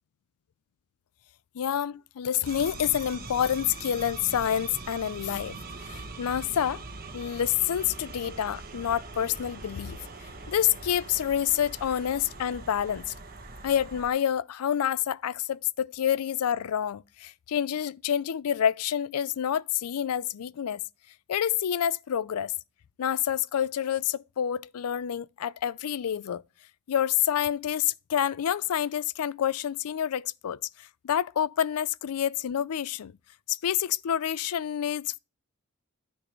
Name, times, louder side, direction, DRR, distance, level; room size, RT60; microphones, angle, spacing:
voice 1, 1.5-5.6 5.8-6.8 7.1-13.1 13.6-20.8 21.3-22.5 23.0-26.4 26.9-33.1 33.5-35.2, left 9 dB, 75° left, 0.4 m, -28 dB
sound 1, 2.4-14.1, right 3 dB, 40° right, 1.4 m, -42 dB
9.8 x 6.2 x 3.0 m
head